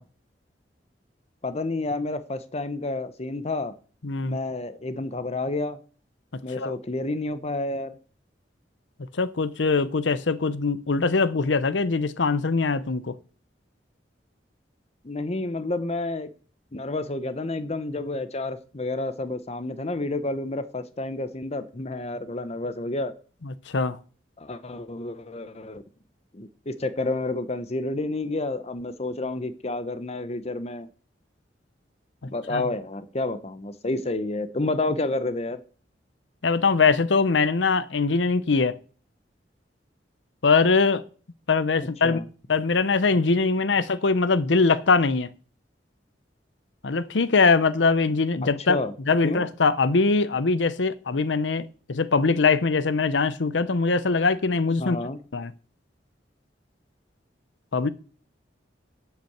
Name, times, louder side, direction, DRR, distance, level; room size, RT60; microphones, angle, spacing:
voice 1, 1.4-3.7 4.2-5.8 6.4-8.0 15.0-16.3 16.7-23.2 24.4-25.8 26.3-30.9 32.2-35.6 42.0-42.3 48.4-48.9 49.2-49.4 54.8-55.2, left 2 dB, 35° left, 0.8 m, -30 dB
voice 2, 4.0-4.4 6.6-6.7 9.1-13.1 23.4-24.0 32.5-32.6 36.4-38.7 40.4-41.0 41.5-42.2 42.5-45.3 46.8-48.8 49.1-55.0 55.3-55.5 57.7-57.9, left 4 dB, 85° left, 0.8 m, -22 dB
10.5 x 5.8 x 7.9 m
head